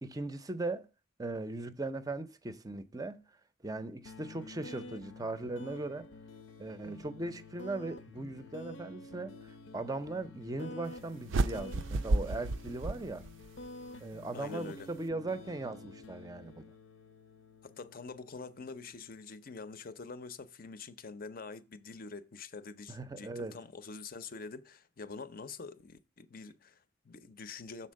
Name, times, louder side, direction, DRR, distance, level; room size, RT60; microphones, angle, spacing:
voice 1, 0.0-0.9 1.2-3.2 3.6-6.1 6.6-13.3 14.0-16.7 22.9-23.6, right 2 dB, 20° right, 0.5 m, -39 dB
sound 1, 4.0-19.1, left 2 dB, 80° left, 0.7 m, -49 dB
sound 2, 11.3-13.7, right 2 dB, 80° right, 0.4 m, -32 dB
voice 2, 14.3-14.9 17.6-27.9, left 4 dB, 50° left, 0.6 m, -46 dB
6.5 x 4.3 x 6.3 m
head